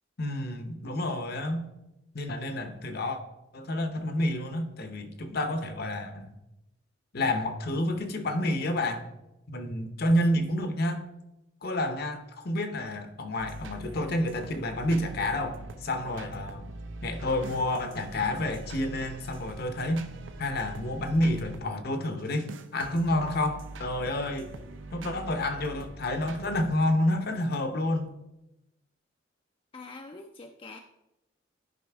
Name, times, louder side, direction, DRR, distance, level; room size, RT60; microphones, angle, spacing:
voice 1, 0.2-1.7 2.1-3.2 3.5-6.4 7.1-9.1 9.5-11.1 11.6-16.7 17.0-20.0 20.4-24.5 24.9-28.1, left 1 dB, 55° left, 7 dB, 0.8 m, -29 dB
sound 1, 13.4-21.7 22.2-26.7, right 2 dB, 70° right, 0.6 m, -43 dB
voice 2, 29.7-30.8, left 3 dB, 25° left, 4 dB, 0.4 m, -44 dB
11.0 x 5.2 x 3.5 m, 0.92 s
head